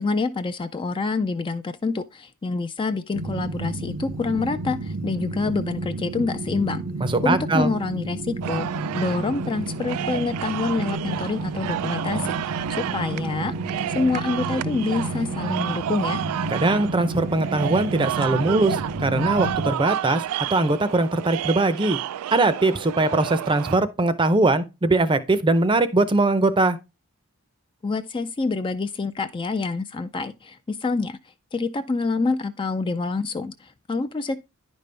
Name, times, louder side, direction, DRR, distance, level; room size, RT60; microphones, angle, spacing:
voice 1, 0.0-6.8 7.2-8.7 8.9-13.5 13.9-16.2 27.8-31.2 31.5-34.4, left 3 dB, 20° left, 0.3 m, -27 dB
sound 1, 3.1-19.7, right 2 dB, 70° right, 0.7 m, -31 dB
voice 2, 7.0-7.7 16.5-20.2 20.5-22.0 22.3-26.8, right 2 dB, 20° right, 0.6 m, -21 dB
sound 2, 8.4-23.8, right 11 dB, 90° right, 0.3 m, -31 dB
10.0 x 5.3 x 3.3 m
head